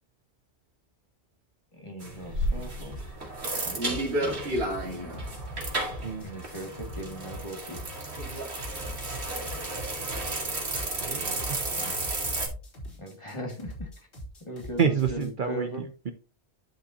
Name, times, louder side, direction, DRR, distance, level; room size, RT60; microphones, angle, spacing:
voice 1, 1.7-3.1 3.6-4.5 6.2-8.1 11.7-11.9 13.0-13.9 14.4-15.9, equal, 25° left, 2 dB, 2.1 m, -39 dB
sound 1, 2.0-12.5, right 1 dB, 70° right, 2.4 m, -32 dB
sound 2, 3.9-15.3, equal, 80° left, 3.1 m, -42 dB
voice 2, 11.0-11.6 14.8-15.7 16.1-16.2, right 6 dB, 55° right, 6 dB, 0.8 m, -28 dB
11.5 x 5.4 x 2.8 m, 0.33 s
omnidirectional pair, 1.1 m